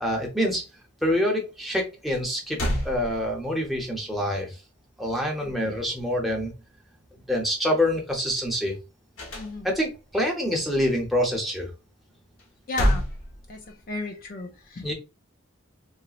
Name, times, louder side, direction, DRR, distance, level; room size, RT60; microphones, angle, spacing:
voice 1, 0.0-0.7 1.0-2.6 2.8-4.6 5.0-6.5 7.3-8.7 9.6-11.7 14.8-14.9, equal, ahead, -1 dB, 0.7 m, -26 dB
sound 1, 2.5-3.7 9.2-10.0 12.4-14.0, equal, 85° left, 1.1 m, -28 dB
voice 2, 9.3-9.7 12.7-13.0 13.5-13.6 13.9-14.9, left 3 dB, 45° left, 3 dB, 0.4 m, -33 dB
3.9 x 2.0 x 2.4 m, 0.28 s
head